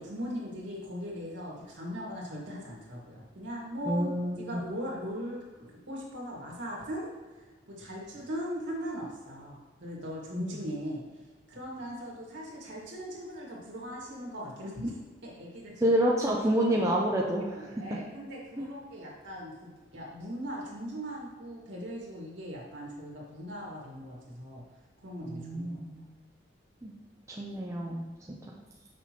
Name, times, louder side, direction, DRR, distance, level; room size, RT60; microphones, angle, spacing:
voice 1, 0.0-4.1 4.4-7.1 7.7-11.0 11.5-14.9 15.2-15.8 16.7-16.8 17.4-24.6 25.0-25.7, equal, 70° right, -4 dB, 1.9 m, -39 dB
voice 2, 3.8-4.6 10.4-10.6 15.8-17.8 18.6-18.7 25.2-26.0 26.8-26.9 27.3-28.4, right 1 dB, 15° right, -2 dB, 0.5 m, -28 dB
6.1 x 6.0 x 2.9 m, 1.3 s
head